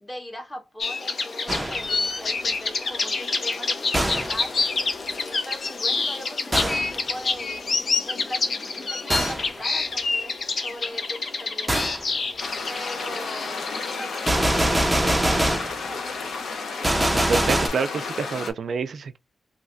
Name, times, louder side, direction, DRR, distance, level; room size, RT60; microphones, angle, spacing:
voice 1, 0.0-4.6 5.1-12.0 12.7-16.2, equal, 20° left, 1.2 m, -40 dB
sound 1, 0.8-15.3, left 4 dB, 55° left, 0.6 m, -28 dB
Gunshot gunfire, 1.5-2.0 3.9-4.5 6.5-7.0 9.1-9.5 11.7-12.0 14.3-15.8 16.8-17.7, right 1 dB, 10° right, 0.5 m, -23 dB
sound 2, 12.4-18.5, left 4 dB, 90° left, 0.9 m, -32 dB
voice 2, 17.3-19.2, right 5 dB, 70° right, 0.3 m, -27 dB
3.1 x 2.7 x 2.5 m
wide cardioid pair, 110°, 0 cm